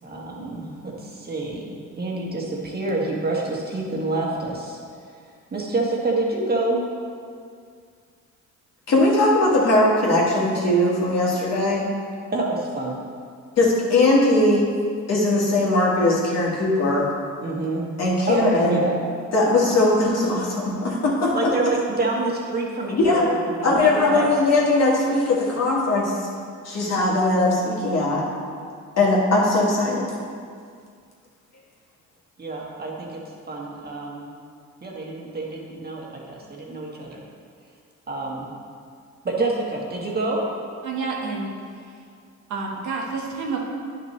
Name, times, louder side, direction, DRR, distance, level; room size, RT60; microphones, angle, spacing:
voice 1, 0.0-1.7 2.0-4.8 5.5-6.8 12.3-13.0 17.4-17.9 18.3-19.0 21.3-24.3 32.4-34.2 34.8-37.2 38.1-38.5 39.2-40.4, right 2 dB, 30° right, -2 dB, 1.6 m, -27 dB
voice 2, 8.9-11.9 13.6-14.7 15.1-17.1 18.0-18.8 19.3-21.4 22.9-23.3 23.6-26.2 26.6-28.3 29.0-30.1, left 2 dB, 60° left, -4 dB, 2.0 m, -20 dB
voice 3, 40.8-41.5 42.5-43.6, right 4 dB, 80° right, -1 dB, 1.4 m, -29 dB
9.7 x 5.8 x 3.3 m, 2.2 s
cardioid pair, 90°, 30 cm